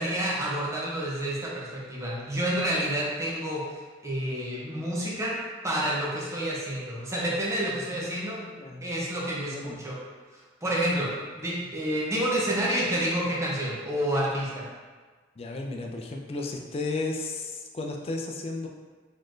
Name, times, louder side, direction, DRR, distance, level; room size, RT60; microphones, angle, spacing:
voice 1, 0.0-5.4 5.6-8.4 8.8-10.0 10.3-11.1 11.4-14.7, right 1 dB, 15° right, -5 dB, 0.7 m, -29 dB
voice 2, 7.9-8.9 9.5-9.8 15.4-18.7, left 3 dB, 30° left, 1 dB, 0.4 m, -34 dB
3.9 x 3.1 x 2.5 m, 1.4 s
head